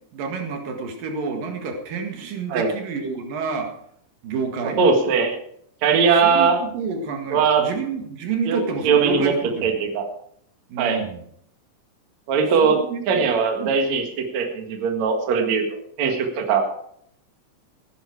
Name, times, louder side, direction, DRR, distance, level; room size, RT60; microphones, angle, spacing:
voice 1, 0.1-3.7 4.2-4.8 6.2-9.7 10.7-11.2 12.6-13.3 13.6-13.8, right 4 dB, 75° right, 4 dB, 3.5 m, -29 dB
voice 2, 4.8-5.4 5.8-6.6 7.3-7.7 8.5-9.3 9.6-10.1 10.8-11.0 12.3-12.8 13.1-16.7, right 5 dB, 55° right, 3 dB, 2.9 m, -20 dB
15.5 x 12.0 x 4.8 m, 0.67 s
omnidirectional pair, 4.0 m